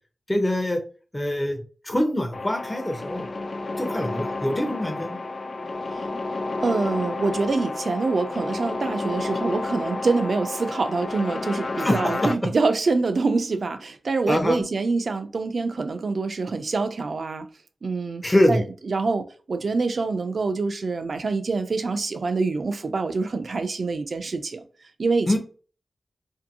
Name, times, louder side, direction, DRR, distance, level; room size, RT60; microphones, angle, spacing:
voice 1, 0.3-0.8 1.1-1.6 1.8-3.3 3.8-5.2 11.8-12.3 14.3-14.6 18.2-18.6 25.3-25.4, left 1 dB, 15° left, 0.6 m, -24 dB
sound 1, 2.3-12.3, left 2 dB, 55° left, 0.3 m, -31 dB
voice 2, 6.6-17.5 17.8-18.2 18.5-24.6 25.0-25.4, right 3 dB, 65° right, 0.4 m, -25 dB
2.6 x 2.6 x 2.6 m
wide cardioid pair, 110°, 0 cm